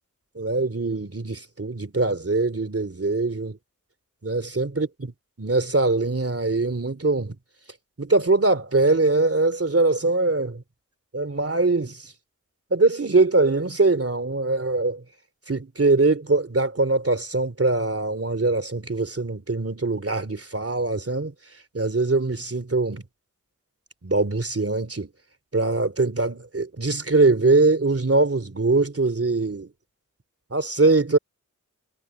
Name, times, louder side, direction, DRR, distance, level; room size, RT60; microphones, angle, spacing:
voice 1, 0.3-3.6 4.2-5.1 5.4-7.4 8.0-10.6 11.1-12.1 12.7-15.0 15.5-21.3 21.7-23.0 24.0-25.1 25.5-29.7 30.5-31.2, right 3 dB, 45° right, 2.9 m, -22 dB
wide cardioid pair, 70°, 31 cm